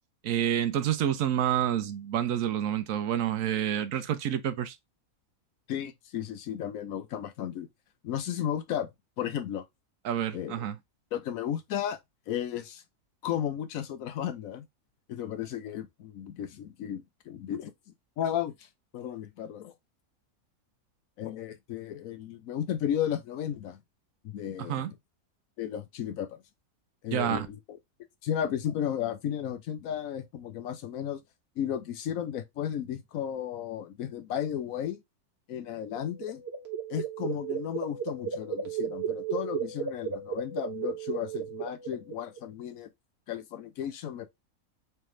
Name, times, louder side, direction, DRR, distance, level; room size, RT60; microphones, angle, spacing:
voice 1, 0.2-4.8 10.0-10.8 24.7-24.9 27.1-27.5, right 10 dB, 70° right, 0.9 m, -28 dB
voice 2, 5.7-7.7 8.0-8.9 9.2-9.6 10.3-10.7 11.1-12.0 12.3-12.8 13.2-14.6 15.1-17.7 18.2-18.7 18.9-19.7 21.2-23.8 24.2-24.9 25.6-26.4 27.0-27.8 28.2-31.2 31.6-35.0 35.5-36.4 36.9-42.9 43.3-44.3, left 10 dB, 70° left, 1.1 m, -34 dB
sound 1, 35.8-42.5, right 7 dB, 50° right, 1.2 m, -35 dB
3.4 x 3.3 x 3.0 m
omnidirectional pair, 1.5 m